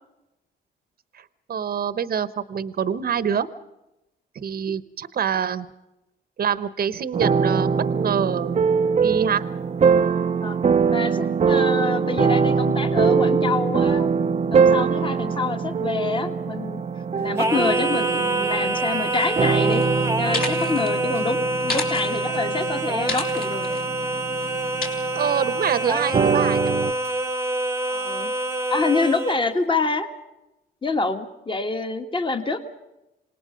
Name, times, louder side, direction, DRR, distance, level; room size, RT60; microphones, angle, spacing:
voice 1, 1.5-3.5 4.3-5.7 6.4-8.6 9.0-9.5 25.1-26.6, right 8 dB, 50° right, 14 dB, 1.0 m, -25 dB
sound 1, 7.1-26.9, right 5 dB, 35° right, 0.7 m, -23 dB
voice 2, 10.9-14.1 14.5-16.8 17.1-19.9 20.2-23.7 27.9-28.3 28.7-30.1 30.8-32.6, left 4 dB, 25° left, 7 dB, 1.8 m, -26 dB
Singing, 17.4-29.4, right 2 dB, 15° right, 1.2 m, -26 dB
sound 2, 19.7-19.9 20.2-20.9 21.6-22.5 23.1-23.8 24.8-24.9, left 3 dB, 50° left, 3.6 m, -30 dB
27.0 x 19.0 x 5.2 m, 0.94 s
cardioid pair, 90°, 20 cm